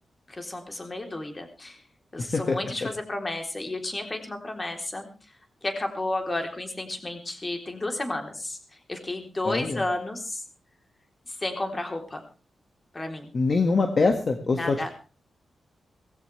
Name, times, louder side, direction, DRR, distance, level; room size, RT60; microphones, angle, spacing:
voice 1, 0.3-1.8 2.1-5.1 5.6-8.6 8.9-10.4 11.4-12.2 12.9-13.3 14.4-14.9, left 2 dB, 25° left, 4 dB, 3.5 m, -32 dB
voice 2, 9.4-9.8 13.3-14.9, left 3 dB, 40° left, 4 dB, 1.8 m, -23 dB
19.0 x 16.0 x 3.4 m, 0.36 s
wide cardioid pair, 120°, 0 cm